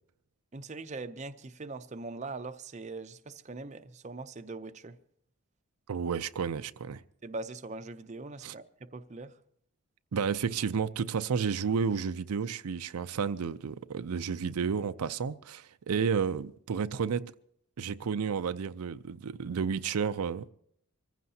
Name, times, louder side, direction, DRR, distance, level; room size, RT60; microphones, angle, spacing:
voice 1, 0.5-5.0 7.2-8.6 8.9-9.3, right 3 dB, 30° right, 0.5 m, -41 dB
voice 2, 5.9-7.0 8.4-8.5 10.1-17.3 17.8-20.5, right 6 dB, 90° right, 0.5 m, -31 dB
25.0 x 15.0 x 2.8 m
head